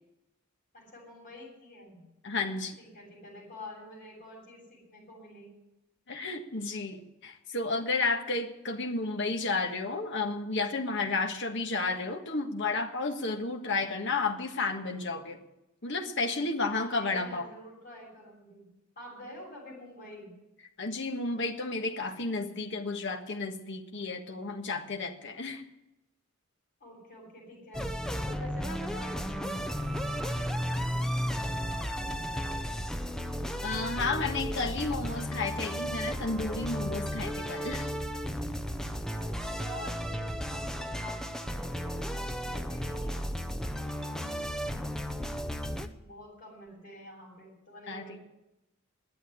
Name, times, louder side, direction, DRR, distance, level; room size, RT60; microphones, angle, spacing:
voice 1, 0.7-2.0 2.8-5.5 16.6-18.7 19.0-20.3 26.8-27.9 28.3-32.8 39.1-43.3 43.9-44.1 45.7-48.2, left 1 dB, 45° left, -6 dB, 7.0 m, -49 dB
voice 2, 2.2-2.8 6.1-15.4 15.8-17.5 20.8-25.6 33.6-37.9 47.9-48.2, left 3 dB, 60° left, 3 dB, 1.6 m, -32 dB
sound 1, 27.7-45.9, equal, 5° left, 0.7 m, -34 dB
11.0 x 8.6 x 9.8 m, 0.90 s
head